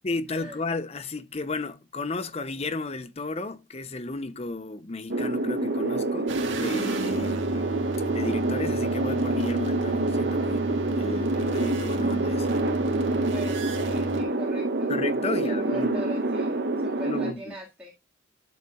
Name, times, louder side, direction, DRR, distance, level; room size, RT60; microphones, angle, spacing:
voice 1, 0.0-6.3 6.5-7.7 8.1-10.7 11.0-12.5 14.9-16.0 17.0-17.6, left 3 dB, 30° left, 0.6 m, -33 dB
sound 1, 5.1-17.3, right 2 dB, 55° right, 1.0 m, -27 dB
sound 2, 6.3-14.2, right 3 dB, 70° right, 1.6 m, -35 dB
voice 2, 13.2-14.9 15.3-17.9, right 1 dB, 10° right, 1.9 m, -41 dB
11.5 x 6.8 x 2.3 m
head